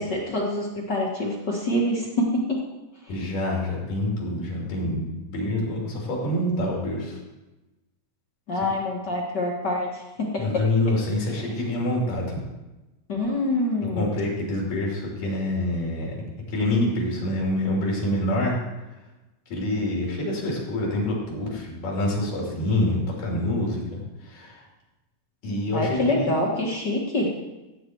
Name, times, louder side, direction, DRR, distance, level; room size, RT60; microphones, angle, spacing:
voice 1, 0.0-2.6 8.5-10.6 13.1-14.1 25.7-27.3, left 1 dB, 40° left, -2 dB, 1.7 m, -26 dB
voice 2, 3.1-7.2 10.4-12.4 13.8-16.1 16.5-18.6 19.5-24.6 25.4-26.5, left 1 dB, 85° left, -3 dB, 4.6 m, -26 dB
15.5 x 8.6 x 4.6 m, 1.1 s
omnidirectional pair, 3.7 m